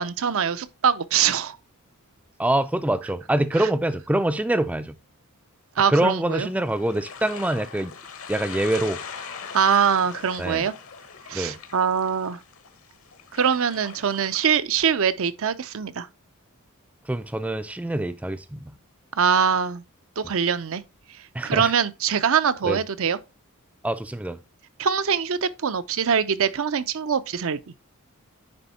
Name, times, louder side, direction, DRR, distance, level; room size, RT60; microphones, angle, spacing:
voice 1, 0.0-1.6 3.6-3.7 5.8-6.5 9.5-10.7 11.3-12.4 13.3-16.1 19.1-19.8 20.2-20.8 21.1-23.2 24.8-27.6, right 7 dB, 65° right, 0.6 m, -23 dB
voice 2, 2.4-5.0 5.9-7.9 8.3-9.0 10.4-10.7 11.3-11.6 17.1-18.7 21.3-21.7 22.6-22.8 23.8-24.4, right 1 dB, 5° right, 0.4 m, -25 dB
sound 1, 6.2-14.6, left 6 dB, 65° left, 1.3 m, -41 dB
9.6 x 3.6 x 4.2 m
head